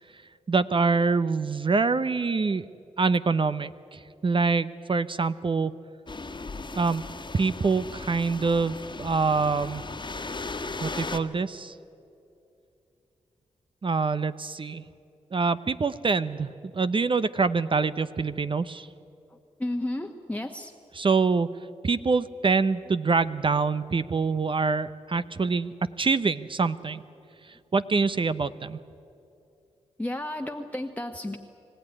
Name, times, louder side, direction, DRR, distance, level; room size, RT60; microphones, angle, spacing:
voice 1, 0.5-2.6 3.0-5.7 6.7-7.0 7.3-9.8 10.8-11.7 13.8-14.8 15.3-18.9 20.9-21.5 21.8-27.0 27.5-28.8, right 4 dB, 45° right, 13 dB, 0.8 m, -25 dB
sound 1, 6.1-11.2, left 3 dB, 40° left, 1.5 m, -37 dB
voice 2, 19.6-20.7 30.0-31.4, left 1 dB, 10° left, 4 dB, 1.3 m, -32 dB
25.0 x 15.5 x 9.9 m, 2.7 s
supercardioid pair, 45°, 12 cm